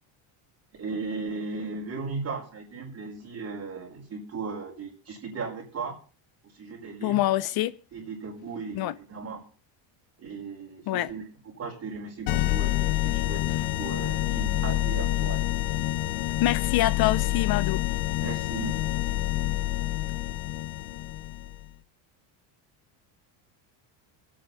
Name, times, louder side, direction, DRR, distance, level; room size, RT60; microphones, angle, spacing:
voice 1, 0.7-6.0 6.4-7.2 7.9-9.4 10.2-15.5 18.2-18.8, right 4 dB, 30° right, 4.9 m, -37 dB
voice 2, 7.0-7.7 8.7-8.9 10.9-11.1 16.4-17.8, left 15 dB, 50° left, 0.7 m, -25 dB
sound 1, 12.3-21.7, left 15 dB, 90° left, 1.3 m, -27 dB
24.0 x 8.7 x 4.1 m
cardioid pair, 130°, 48 cm